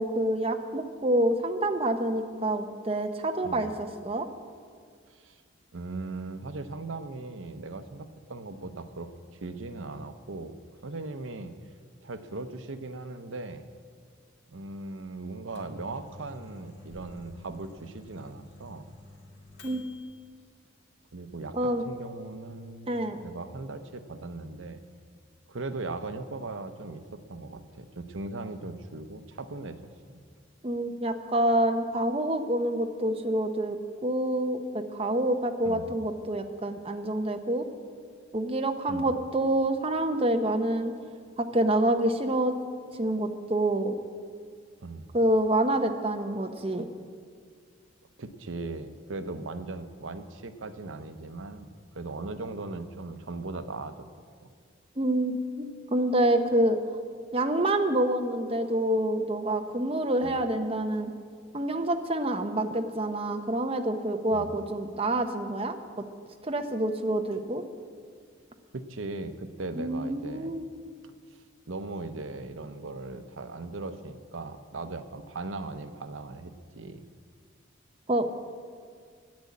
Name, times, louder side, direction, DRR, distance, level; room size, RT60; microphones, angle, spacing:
voice 1, 0.0-4.3 19.6-19.8 21.5-21.8 22.9-23.2 30.6-37.6 38.3-40.9 41.4-42.6 43.0-44.0 45.1-46.9 55.0-56.8 57.3-61.1 61.5-65.8 66.4-67.6 69.8-70.7 78.1-78.3, right 1 dB, 30° right, 5 dB, 0.8 m, -27 dB
voice 2, 5.7-9.1 9.4-10.6 10.8-11.5 12.0-13.7 14.5-18.9 21.1-24.8 25.5-29.8 30.1-30.2 35.6-36.0 38.9-39.1 44.8-45.1 48.2-51.7 51.9-54.1 54.4-54.5 60.2-60.4 64.3-64.5 68.7-70.7 71.3-77.0, right 3 dB, 80° right, 10 dB, 0.8 m, -39 dB
Microwave oven, 15.3-20.1, left 2 dB, 60° left, 2.0 m, -50 dB
10.5 x 9.5 x 8.5 m, 2.1 s
head